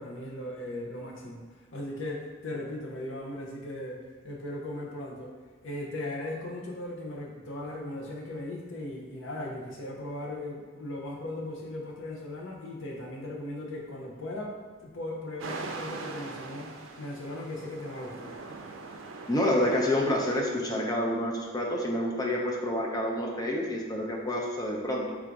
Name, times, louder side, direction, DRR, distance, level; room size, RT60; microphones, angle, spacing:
voice 1, 0.0-1.4 1.7-5.3 5.6-14.5 14.8-18.3, left 1 dB, 75° left, -1 dB, 0.7 m, -38 dB
sound 1, 15.4-20.4, right 3 dB, 80° right, 0.4 m, -42 dB
voice 2, 19.3-25.2, left 1 dB, 20° left, -1 dB, 0.5 m, -28 dB
3.6 x 2.6 x 4.5 m, 1.5 s
head